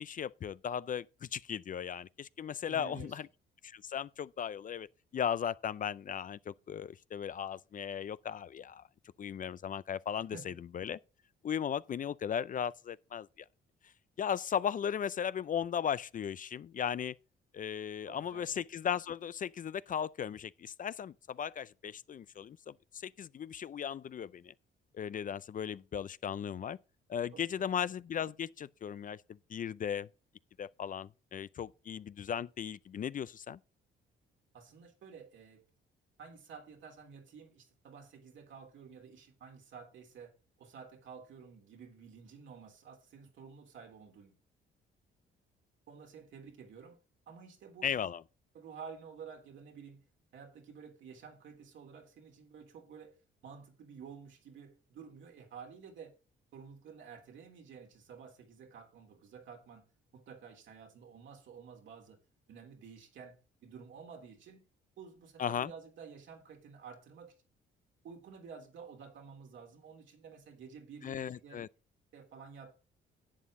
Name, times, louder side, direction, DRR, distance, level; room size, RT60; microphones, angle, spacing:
voice 1, 0.0-3.3 3.6-4.9 5.1-8.8 9.2-11.0 11.4-13.5 14.2-17.2 17.5-24.5 24.9-26.8 27.1-29.2 29.5-30.1 30.6-33.6 47.8-48.2 65.4-65.7 71.0-71.7, left 8 dB, 40° left, 0.5 m, -37 dB
voice 2, 2.6-3.2 10.3-10.6 18.0-18.5 27.3-27.7 34.5-35.6 36.2-40.3 40.6-44.3 45.9-47.0 47.3-47.9 48.5-50.0 50.3-53.1 53.4-56.1 56.5-59.8 60.1-62.2 62.5-64.6 65.0-67.3 68.0-71.6 72.1-72.7, right 6 dB, 75° right, 3.3 m, -51 dB
11.0 x 8.4 x 3.7 m
cardioid pair, 90°, 20 cm